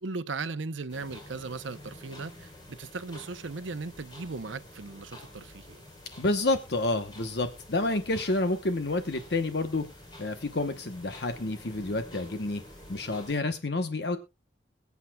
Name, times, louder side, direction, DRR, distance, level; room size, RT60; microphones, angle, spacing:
voice 1, 0.0-5.8 7.8-7.9, right 3 dB, 85° right, 0.8 m, -37 dB
sound 1, 0.9-13.4, left 1 dB, 25° left, 3.6 m, -49 dB
voice 2, 6.2-9.9 10.2-12.6 12.9-14.2, left 2 dB, 60° left, 1.0 m, -29 dB
22.0 x 8.3 x 2.3 m
head